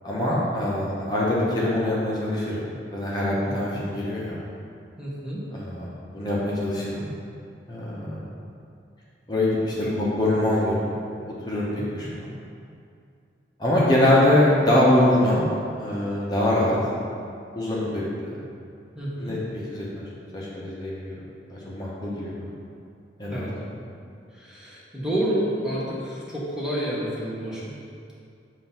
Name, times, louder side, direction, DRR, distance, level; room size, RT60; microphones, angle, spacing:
voice 1, 0.0-4.4 5.5-5.9 6.1-7.1 7.7-8.2 9.3-10.9 11.3-12.3 13.6-15.4 15.8-16.8 17.5-18.4 19.2-19.4 19.7-20.1 20.3-21.2 21.5-22.5 23.2-23.5, left 1 dB, 25° left, -6 dB, 0.9 m, -23 dB
voice 2, 3.5-3.9 5.0-5.5 9.8-9.9 11.8-12.1 18.9-19.4 23.3-23.6 24.3-27.7, right 1 dB, 5° right, -7 dB, 1.0 m, -30 dB
7.5 x 2.7 x 5.8 m, 2.4 s
head